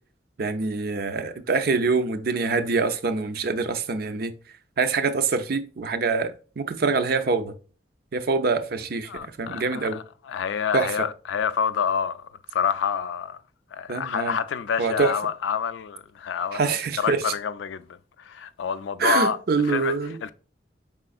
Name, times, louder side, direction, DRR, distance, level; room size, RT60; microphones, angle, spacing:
voice 1, 0.4-4.3 4.8-7.5 8.1-10.0 10.7-11.1 13.9-14.4 14.8-15.1 16.5-17.2 19.0-20.2, right 4 dB, 55° right, 0.5 m, -25 dB
voice 2, 9.1-13.4 13.7-16.7 17.0-17.9 18.2-19.4 19.7-19.9 20.2-20.3, left 7 dB, 90° left, 0.4 m, -27 dB
5.0 x 3.7 x 2.3 m
head